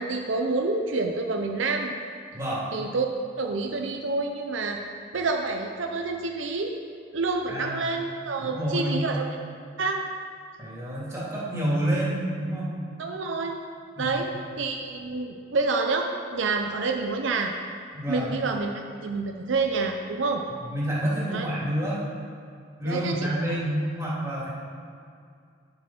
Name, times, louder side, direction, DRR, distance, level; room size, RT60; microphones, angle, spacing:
voice 1, 0.0-1.9 2.7-3.1 3.4-4.8 5.1-6.7 7.1-9.3 9.8-10.0 13.0-13.5 14.0-14.3 14.6-17.5 18.1-18.7 19.0-20.4 21.3-21.5 22.9-23.5, right 3 dB, 70° right, 2 dB, 0.7 m, -28 dB
voice 2, 2.3-2.7 7.5-7.8 8.4-9.0 10.6-12.8 13.9-14.2 17.9-18.3 20.7-22.0 22.8-24.5, right 1 dB, 15° right, -8 dB, 3.0 m, -28 dB
10.0 x 7.0 x 5.9 m, 2.3 s
head